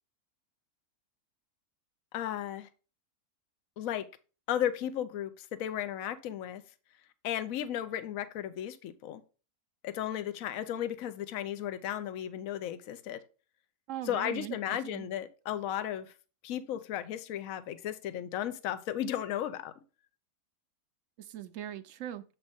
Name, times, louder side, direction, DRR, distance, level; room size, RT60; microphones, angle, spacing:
voice 1, 2.1-2.7 3.8-4.1 4.5-6.6 7.2-9.2 9.8-13.2 14.1-16.1 16.4-19.7, left 11 dB, 65° left, 1.1 m, -35 dB
voice 2, 13.9-15.1 21.2-22.2, right 11 dB, 65° right, 0.9 m, -40 dB
7.3 x 5.2 x 3.5 m
omnidirectional pair, 1.6 m